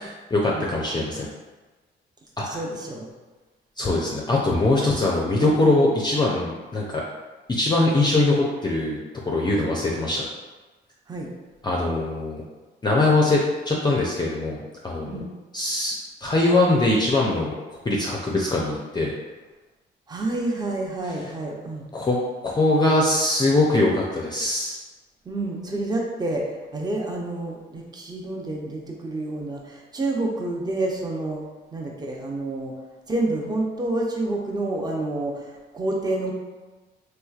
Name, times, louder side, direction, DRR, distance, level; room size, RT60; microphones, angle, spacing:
voice 1, 0.3-1.3 2.4-2.6 3.8-7.0 7.5-9.0 9.3-10.3 11.6-12.4 12.8-14.6 14.8-15.2 15.5-15.9 16.2-17.5 17.8-19.1 21.9-22.2 22.4-24.8, left 2 dB, 20° left, -3 dB, 0.5 m, -22 dB
voice 2, 2.4-3.1 11.1-11.3 15.0-15.3 20.1-21.9 25.2-31.4 31.7-32.7 33.1-36.3, right 2 dB, 20° right, -1 dB, 0.6 m, -28 dB
3.2 x 3.0 x 2.3 m, 1.2 s
cardioid pair, 90°, 20 cm